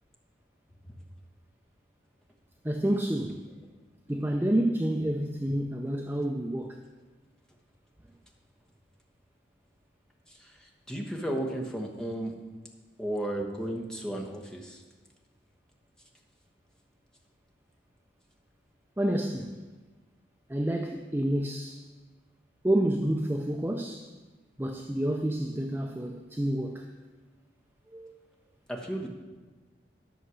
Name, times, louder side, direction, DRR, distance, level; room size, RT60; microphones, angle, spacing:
voice 1, 2.6-3.5 4.1-6.8 19.0-19.5 20.5-21.8 22.6-24.1 24.6-26.9 27.9-28.1, right 1 dB, 10° right, 0.4 m, -29 dB
voice 2, 10.3-12.3 13.0-14.8 28.7-29.1, right 1 dB, 5° left, 1.1 m, -34 dB
11.0 x 6.4 x 6.2 m
head